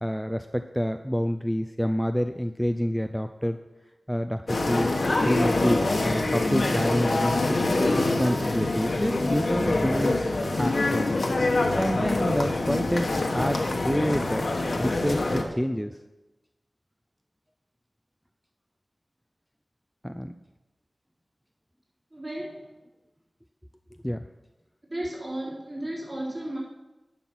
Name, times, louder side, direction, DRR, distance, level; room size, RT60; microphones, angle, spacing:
voice 1, 0.0-3.6 4.1-4.9 5.2-7.6 8.0-10.2 10.6-11.1 11.7-16.0 20.0-20.3 24.0-24.3, equal, ahead, 8 dB, 0.4 m, -28 dB
sound 1, 4.5-15.4, left 2 dB, 75° left, 1.2 m, -25 dB
voice 2, 22.1-22.7 24.9-26.6, right 1 dB, 40° right, -6 dB, 4.2 m, -34 dB
11.0 x 5.7 x 6.1 m, 1.1 s
wide cardioid pair, 55°, 0 cm